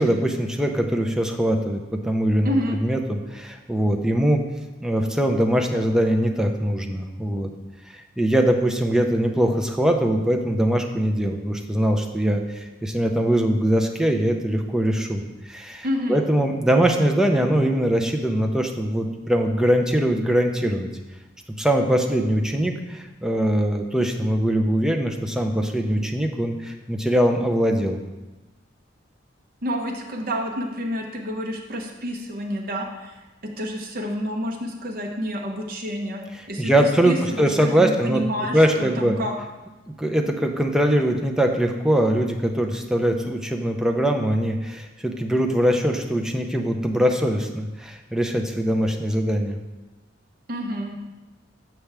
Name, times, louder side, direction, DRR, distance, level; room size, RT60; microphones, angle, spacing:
voice 1, 0.0-4.4 4.8-7.5 8.2-20.9 21.6-28.0 36.6-38.2 38.5-39.1 40.0-49.6, right 1 dB, 5° right, 3 dB, 0.5 m, -22 dB
voice 2, 2.4-2.8 15.8-16.2 29.6-39.3 50.5-50.9, equal, 50° right, 0 dB, 0.9 m, -29 dB
6.8 x 6.0 x 3.4 m, 1.1 s
head